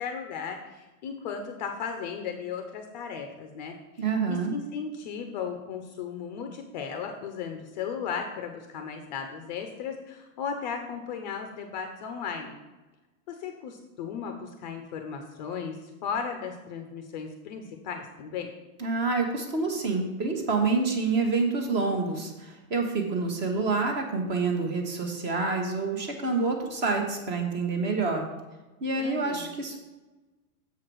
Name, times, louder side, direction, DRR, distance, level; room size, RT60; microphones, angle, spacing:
voice 1, 0.0-12.6 13.3-18.5 29.0-29.6, left 6 dB, 30° left, 5 dB, 0.6 m, -36 dB
voice 2, 4.0-4.5 18.8-28.3 28.8-29.8, right 4 dB, 25° right, 4 dB, 1.0 m, -27 dB
7.1 x 4.8 x 6.0 m, 1.1 s
hypercardioid pair, 155°, 44 cm